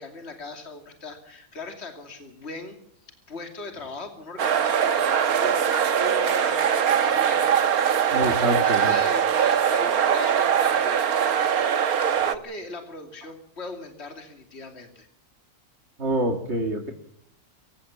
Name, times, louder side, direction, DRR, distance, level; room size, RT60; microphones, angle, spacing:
voice 1, 0.0-2.8 3.0-15.1, left 3 dB, 45° left, 5 dB, 3.0 m, -40 dB
sound 1, 4.4-12.4, right 8 dB, 75° right, 1.7 m, -22 dB
voice 2, 8.1-9.0 16.0-16.9, right 1 dB, 45° right, 4 dB, 2.5 m, -26 dB
25.5 x 16.0 x 7.1 m, 0.69 s
omnidirectional pair, 1.6 m